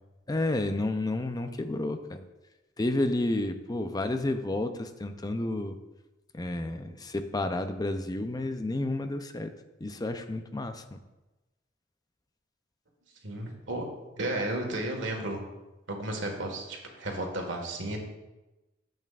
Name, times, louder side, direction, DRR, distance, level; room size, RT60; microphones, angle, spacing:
voice 1, 0.3-2.2 2.8-5.8 6.3-9.5 9.8-11.0, left 2 dB, 20° left, 8 dB, 0.5 m, -31 dB
voice 2, 13.2-13.9 14.2-15.4 15.9-18.0, right 1 dB, 80° right, 2 dB, 1.7 m, -33 dB
10.5 x 8.0 x 2.5 m, 1.1 s
head